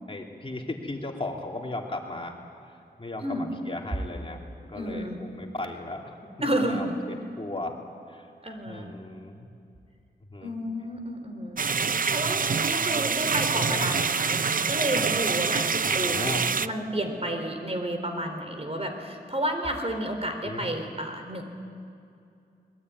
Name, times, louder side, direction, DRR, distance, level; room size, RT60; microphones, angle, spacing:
voice 1, 0.1-2.3 3.0-4.4 4.7-6.3 6.6-7.7 8.1-8.2 8.7-9.5 10.3-10.5 13.7-13.9 15.9-16.4 20.4-20.7, left 2 dB, 30° left, 0 dB, 3.1 m, -36 dB
voice 2, 4.7-5.2 6.4-7.0 8.4-8.9 10.4-11.7 12.1-15.7 15.9-16.3 16.6-21.4, right 1 dB, 35° right, 5 dB, 4.0 m, -31 dB
sound 1, 11.6-16.7, right 5 dB, 55° right, 0.6 m, -26 dB
25.0 x 21.0 x 9.6 m, 2.5 s
wide cardioid pair, 75°, 17 cm